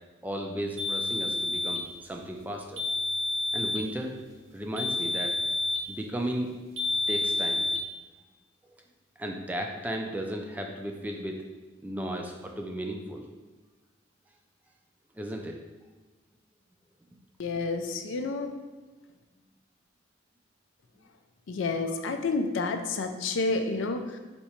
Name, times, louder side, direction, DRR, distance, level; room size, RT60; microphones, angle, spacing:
voice 1, 0.2-2.8 3.5-4.1 4.5-5.4 5.9-6.5 7.1-7.6 9.2-11.4 11.8-13.2 15.2-15.6, right 1 dB, 10° right, 2 dB, 0.3 m, -34 dB
sound 1, 0.8-1.9 2.8-3.9 4.8-5.9 6.8-7.8, left 2 dB, 75° right, 0.8 m, -29 dB
voice 2, 17.4-18.5 21.5-24.2, left 3 dB, 75° left, 7 dB, 0.4 m, -29 dB
4.4 x 2.8 x 4.3 m, 1.2 s
head